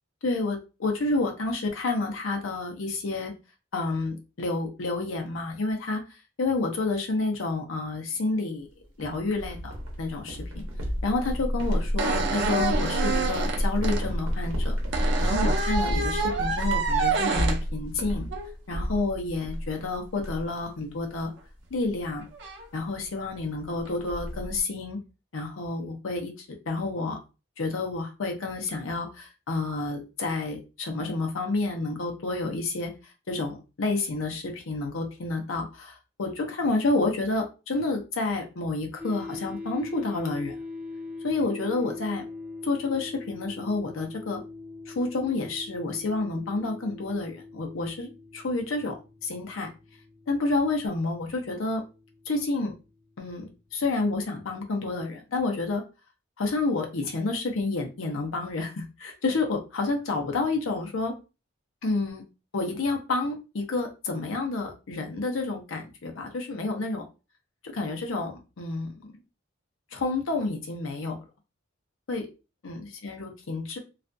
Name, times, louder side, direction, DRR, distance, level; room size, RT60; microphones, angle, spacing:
voice 1, 0.2-3.3 3.7-6.0 6.4-8.7 9.0-10.6 11.0-14.8 15.2-18.3 18.7-21.3 21.7-22.2 22.7-25.0 25.3-27.2 27.6-40.5 41.2-42.2 42.6-44.4 44.9-49.0 49.2-49.7 50.3-51.8 52.3-52.7 53.2-55.8 56.4-61.1 61.8-62.2 62.5-67.0 67.6-69.1 69.9-71.2 72.1-72.3 72.6-73.8, left 3 dB, 80° left, 2 dB, 0.6 m, -29 dB
sound 1, 9.0-19.9 20.2-20.6 21.0-21.2 21.6-21.9 22.9-23.0 23.3-23.4 23.6-24.6, equal, 90° right, 0.8 m, -30 dB
sound 2, 11.6-11.7 12.0-14.0 14.9-17.6 18.3-18.5 21.4-21.5 22.3-22.7 23.7-23.9, right 4 dB, 60° right, 0.5 m, -28 dB
sound 3, 39.0-54.2, left 3 dB, 10° right, 0.3 m, -42 dB
2.4 x 2.2 x 2.5 m, 0.30 s
head